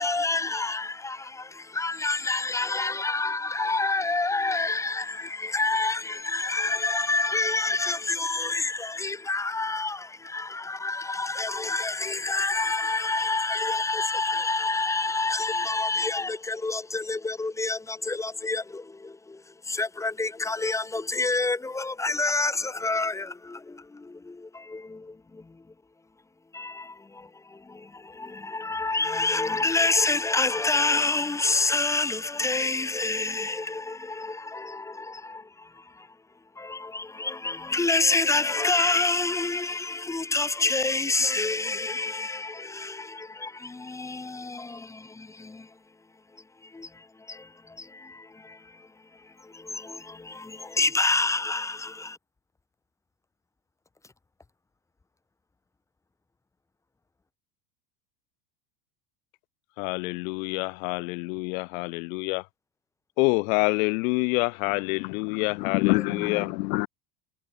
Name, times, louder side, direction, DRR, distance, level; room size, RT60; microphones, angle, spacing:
voice 1, 0.0-25.6 26.5-36.1 36.6-45.7 46.6-48.9 49.1-52.2 66.2-66.3, left 3 dB, 5° left, 1.0 m, -28 dB
voice 2, 59.8-62.5 63.2-66.5, left 30 dB, 55° left, 0.9 m, -27 dB
voice 3, 65.0-66.9, left 23 dB, 75° left, 1.6 m, -27 dB
cardioid pair, 175°, 50 cm